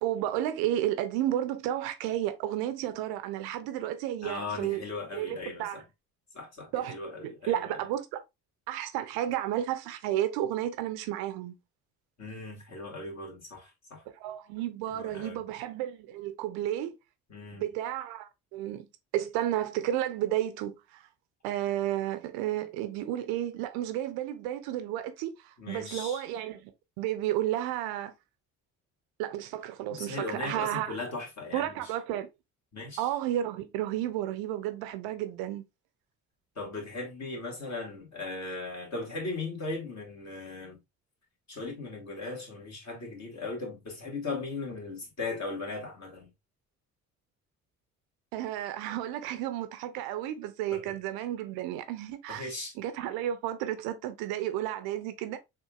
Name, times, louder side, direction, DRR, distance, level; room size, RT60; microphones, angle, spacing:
voice 1, 0.0-4.9 5.2-5.8 6.7-7.0 7.2-8.2 8.7-11.5 14.1-16.9 17.5-18.9 19.1-21.1 21.4-26.7 27.0-28.1 29.2-31.0 31.5-32.3 33.0-35.6 48.3-55.4, right 12 dB, 60° right, 0.6 m, -32 dB
voice 2, 4.2-5.8 6.3-7.8 12.2-14.0 14.9-15.4 17.3-17.7 25.6-26.2 29.9-31.9 32.7-33.1 36.6-40.8 41.5-46.3 50.7-50.9 52.3-52.7, left 3 dB, 40° left, 2.0 m, -38 dB
6.5 x 2.5 x 2.3 m
figure-of-eight pair, 50°, 42 cm